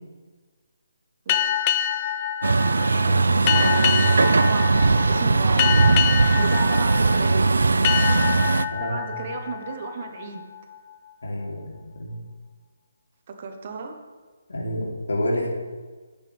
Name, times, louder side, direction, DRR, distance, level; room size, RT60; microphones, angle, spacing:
sound 1, 1.3-10.6, left 10 dB, 20° left, 0.4 m, -27 dB
Truck, 2.4-8.7, right 3 dB, 90° right, 0.5 m, -19 dB
voice 1, 2.8-4.2 8.7-9.1 11.2-12.2 14.5-15.5, left 1 dB, 90° left, -3 dB, 3.5 m, -30 dB
voice 2, 4.0-5.8 6.4-7.5 8.8-10.4 13.3-14.0, right 4 dB, 30° right, 4 dB, 1.2 m, -33 dB
22.5 x 8.8 x 3.6 m, 1.4 s
hypercardioid pair, 175°, 0 cm